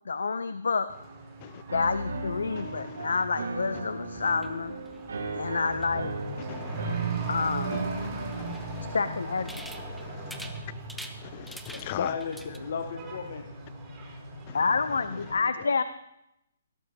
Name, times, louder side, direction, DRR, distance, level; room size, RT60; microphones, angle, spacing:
voice 1, 0.1-0.9 1.7-4.8 5.4-6.1 7.3-7.8 8.9-9.6 14.5-15.8, left 4 dB, 90° left, 12 dB, 0.5 m, -28 dB
Truck / Accelerating revving vroom, 0.9-15.3, right 3 dB, 20° right, 3.5 m, -39 dB
Piano, 1.7-8.5, right 2 dB, 85° right, 1.6 m, -36 dB
sound 1, 4.2-12.6, equal, ahead, 0.7 m, -48 dB
voice 2, 6.5-6.8 8.1-8.9 10.0-10.1 11.2-12.1 14.5-14.6, left 16 dB, 35° left, 20 dB, 0.3 m, -40 dB
voice 3, 11.7-13.6 15.1-15.7, left 6 dB, 60° left, 5 dB, 1.0 m, -36 dB
17.0 x 12.5 x 2.8 m, 0.84 s
hypercardioid pair, 160°, 0 cm